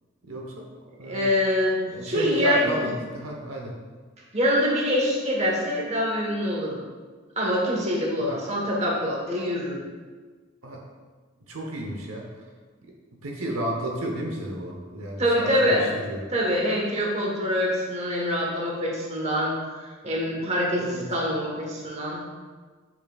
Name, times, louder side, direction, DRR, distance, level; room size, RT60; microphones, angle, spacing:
voice 1, 0.2-0.6 1.0-1.2 1.9-3.7 8.2-8.4 10.6-10.8 11.5-12.3 13.2-16.2 20.8-21.0, right 1 dB, 90° right, 0 dB, 0.9 m, -32 dB
voice 2, 1.1-2.9 4.3-6.8 7.4-9.8 15.2-15.8 16.3-22.2, equal, 30° right, -3 dB, 1.3 m, -25 dB
6.8 x 5.9 x 2.4 m, 1.4 s
head